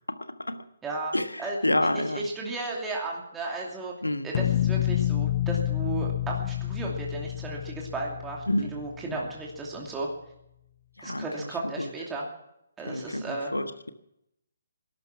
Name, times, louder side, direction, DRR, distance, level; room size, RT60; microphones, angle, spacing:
voice 1, 0.1-0.6 1.1-2.3 4.0-4.3 8.5-8.8 9.1-9.2 11.0-11.5 11.8-11.9 12.9-13.9, left 1 dB, 90° left, 10 dB, 1.3 m, -29 dB
voice 2, 0.8-1.1 1.4-1.6 2.1-3.9 4.2-8.4 8.7-10.1 11.0-12.3 12.8-13.5, right 2 dB, 10° right, -2 dB, 2.7 m, -34 dB
sound 1, 4.3-9.2, left 12 dB, 45° left, 0.8 m, -29 dB
19.5 x 12.0 x 6.1 m, 0.82 s
figure-of-eight pair, 140°, 0 cm